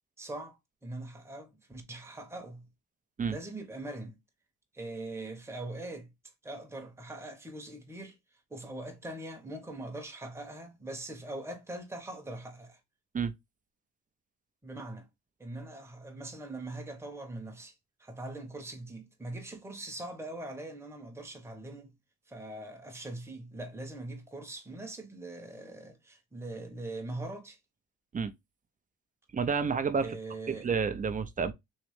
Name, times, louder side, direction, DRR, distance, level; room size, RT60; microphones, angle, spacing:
voice 1, 0.2-2.7 3.3-4.2 4.7-6.1 6.4-8.2 8.5-12.8 14.6-15.1 15.4-17.7 18.0-21.9 22.3-27.6 30.0-30.7, right 2 dB, 10° right, 0.9 m, -42 dB
voice 2, 29.3-30.2 30.5-31.5, right 5 dB, 25° right, 0.5 m, -30 dB
3.2 x 3.0 x 3.1 m
cardioid pair, 90°, 30 cm